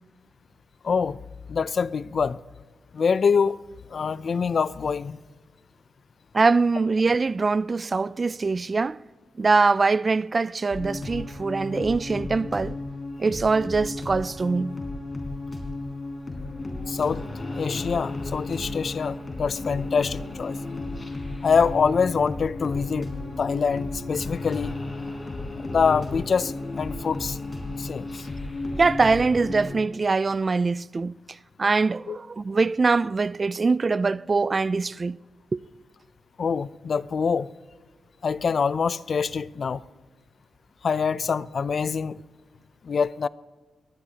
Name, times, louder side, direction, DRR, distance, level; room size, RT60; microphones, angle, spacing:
voice 1, 0.8-1.2 1.5-2.4 2.9-3.6 3.9-5.2 16.9-17.2 17.5-20.6 21.4-23.1 23.4-24.7 25.6-27.4 27.8-28.3 32.1-32.2 36.4-37.5 38.2-39.8 40.8-42.2 42.8-43.3, left 5 dB, 55° left, 0.4 m, -25 dB
voice 2, 6.3-9.0 9.4-12.8 13.2-14.7 28.8-31.1 31.6-35.2 35.5-35.6, right 4 dB, 40° right, 0.3 m, -23 dB
sound 1, 10.7-29.7, left 2 dB, 35° left, 4.1 m, -34 dB
21.5 x 18.5 x 2.9 m
cardioid pair, 70°, 0 cm